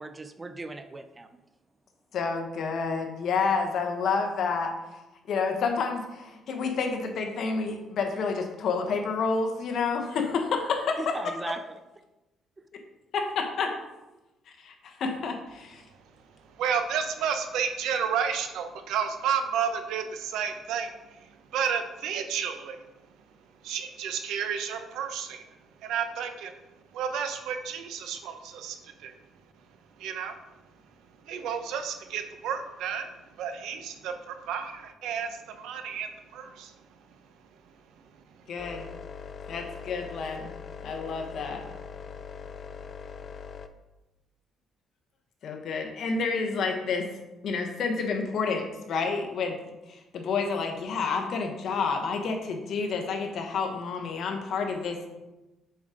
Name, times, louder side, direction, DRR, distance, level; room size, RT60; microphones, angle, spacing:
voice 1, 0.0-1.4 11.0-11.8 12.6-12.7, right 3 dB, 20° right, 9 dB, 0.4 m, -38 dB
voice 2, 2.1-4.7 5.3-11.0 13.1-13.7 14.6-15.8 38.5-38.9 39.5-40.5 40.8-41.6 45.4-47.1 47.4-49.6 49.9-55.1, left 4 dB, 55° left, 3 dB, 1.1 m, -29 dB
voice 3, 16.6-20.9 21.5-22.8 23.6-25.4 25.8-26.5 26.9-29.1 30.0-30.4 31.3-33.1 33.4-36.7, right 7 dB, 80° right, 8 dB, 0.7 m, -31 dB
sound 1, 38.6-43.7, left 6 dB, 40° left, 0.5 m, -42 dB
7.0 x 5.0 x 3.8 m, 1.0 s
cardioid pair, 135°, 0 cm